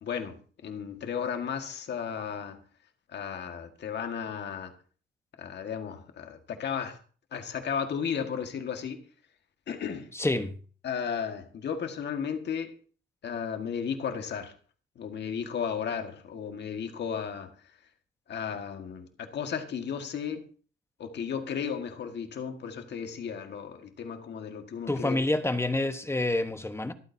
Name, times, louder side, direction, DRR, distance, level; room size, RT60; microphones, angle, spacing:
voice 1, 0.0-2.6 3.1-4.7 5.4-7.0 7.3-9.0 9.7-10.1 10.8-12.7 13.2-14.5 15.0-17.5 18.3-20.4 21.0-25.3, left 7 dB, 60° left, 1.8 m, -34 dB
voice 2, 10.1-10.6 24.9-26.9, left 2 dB, 15° left, 1.2 m, -28 dB
25.0 x 8.8 x 2.8 m
cardioid pair, 90°, 20 cm